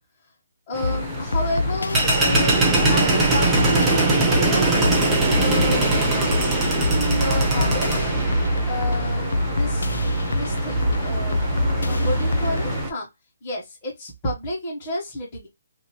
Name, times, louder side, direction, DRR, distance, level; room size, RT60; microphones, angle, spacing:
voice 1, 0.7-2.6 2.9-4.7 5.3-8.1 8.7-9.9 10.3-11.5 11.8-13.1 13.4-15.5, left 1 dB, 15° left, -7 dB, 1.2 m, -30 dB
sound 1, 0.7-12.9, right 2 dB, 10° right, 0.6 m, -22 dB
sound 2, 0.8-12.8, left 3 dB, 85° left, 0.4 m, -26 dB
2.8 x 2.6 x 2.9 m, 0.19 s
hypercardioid pair, 175°, 0 cm